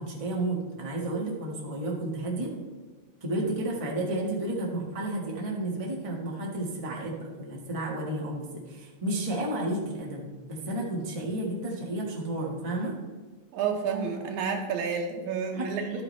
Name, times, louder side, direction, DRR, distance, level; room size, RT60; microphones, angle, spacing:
voice 1, 0.0-2.6 3.2-12.9 15.5-16.0, right 1 dB, 30° right, -3 dB, 0.5 m, -32 dB
voice 2, 13.5-16.0, right 6 dB, 80° right, 2 dB, 2.2 m, -30 dB
12.0 x 8.7 x 3.2 m, 1.4 s
omnidirectional pair, 3.4 m